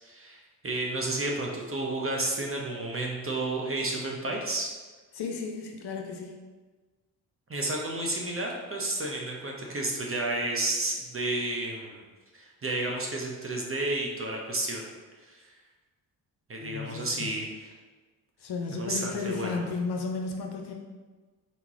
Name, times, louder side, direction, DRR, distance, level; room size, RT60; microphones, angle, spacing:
voice 1, 0.0-4.7 7.5-12.0 12.3-14.8 15.3-15.5 16.5-17.5 18.7-19.6, right 2 dB, 25° right, -1 dB, 1.1 m, -31 dB
voice 2, 5.1-6.4 16.6-17.3 18.4-20.7, left 4 dB, 50° left, 2 dB, 0.8 m, -33 dB
4.2 x 3.7 x 3.1 m, 1.3 s
hypercardioid pair, 45°, 50 cm